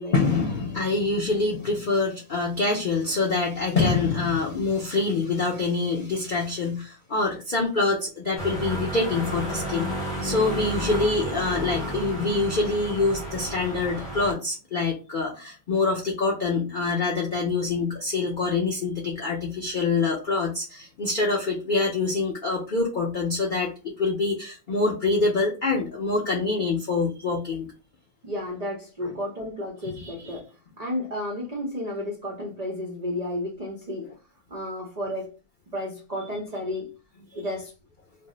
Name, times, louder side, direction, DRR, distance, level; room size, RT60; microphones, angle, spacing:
voice 1, 0.1-9.9 10.2-27.7 29.0-29.1 29.9-30.3, left 3 dB, 75° left, 0.4 m, -25 dB
sound 1, 8.4-14.3, right 1 dB, 30° left, 0.8 m, -32 dB
voice 2, 28.2-30.5 30.8-34.1 34.5-35.3 35.7-36.9 37.3-37.7, left 1 dB, 70° right, 0.3 m, -32 dB
2.6 x 2.0 x 3.7 m
omnidirectional pair, 1.7 m